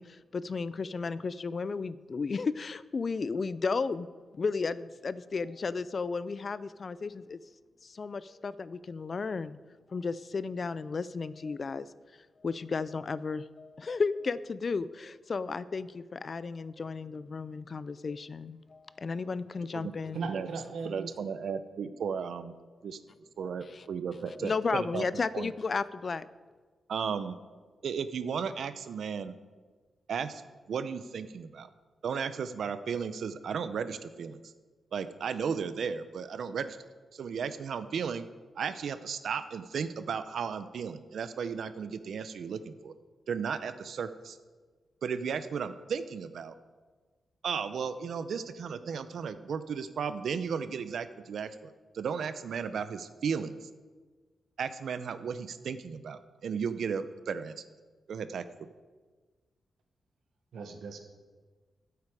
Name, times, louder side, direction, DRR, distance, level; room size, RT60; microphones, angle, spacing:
voice 1, 0.0-4.1 4.3-7.4 7.8-9.6 9.9-11.9 12.4-20.2 23.4-23.8 24.3-26.3, left 4 dB, 40° left, 16 dB, 0.4 m, -34 dB
voice 2, 20.1-21.1 60.5-61.0, right 4 dB, 85° right, 6 dB, 1.3 m, -37 dB
voice 3, 20.8-22.5 22.8-23.0 23.4-25.5 26.9-27.4 27.8-29.4 30.1-30.4 30.7-31.7 32.0-34.4 34.9-36.8 37.1-38.3 38.6-42.9 43.3-44.4 45.0-46.5 47.4-53.7 54.6-57.5 58.1-58.4, right 6 dB, 70° right, 12 dB, 0.6 m, -35 dB
14.0 x 8.2 x 4.9 m, 1.4 s
wide cardioid pair, 140°, 0 cm